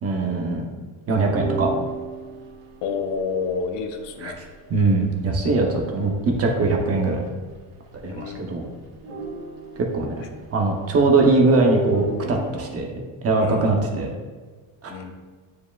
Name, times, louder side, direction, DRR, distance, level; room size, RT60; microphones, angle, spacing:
voice 1, 0.0-0.6 1.1-1.7 4.2-4.4 4.7-7.2 8.0-8.7 9.9-10.2 10.5-12.9 13.2-14.1 14.8-14.9, right 3 dB, 30° right, 1 dB, 0.7 m, -21 dB
sound 1, 1.4-6.4 6.7-6.8 7.1-7.5 7.9-8.5 8.8-11.2 11.6-12.8, right 3 dB, 90° right, 1.8 m, -35 dB
voice 2, 2.8-4.4 8.0-8.5 13.3-13.7 14.9-15.1, left 5 dB, 60° left, 5 dB, 0.8 m, -29 dB
9.2 x 4.8 x 2.3 m, 1.4 s
cardioid pair, 170°, 49 cm